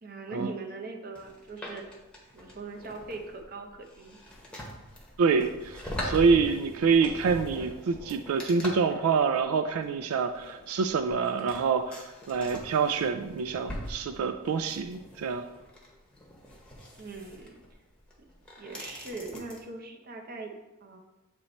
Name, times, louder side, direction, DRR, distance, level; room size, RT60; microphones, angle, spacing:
voice 1, 0.0-1.9 2.3-4.2 17.0-17.6 18.2-18.3 18.6-20.6 20.8-21.0, right 3 dB, 45° right, 3 dB, 0.7 m, -41 dB
sound 1, 1.1-19.6, equal, 5° left, 0.9 m, -42 dB
voice 2, 5.2-15.5, right 5 dB, 90° right, 8 dB, 0.3 m, -26 dB
7.7 x 3.0 x 4.2 m, 1.1 s
head